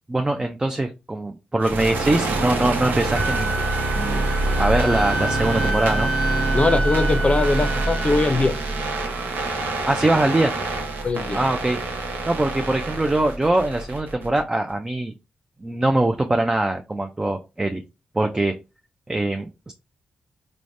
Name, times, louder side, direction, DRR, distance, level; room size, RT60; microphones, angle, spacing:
voice 1, 0.1-3.5 3.9-6.1 9.9-10.5 11.3-11.8 12.3-15.1 15.6-17.8 18.1-18.6 19.1-19.7, right 2 dB, 20° right, 5 dB, 0.4 m, -22 dB
sound 1, 1.6-14.4, right 2 dB, 75° right, 0.7 m, -25 dB
Wind instrument woodwind instrument, 3.1-8.3, right 1 dB, 5° left, 1.0 m, -29 dB
voice 2, 6.5-8.5 11.0-11.4, left 3 dB, 35° left, 10 dB, 0.5 m, -21 dB
3.2 x 2.1 x 2.5 m, 0.27 s
supercardioid pair, 55°, 3 cm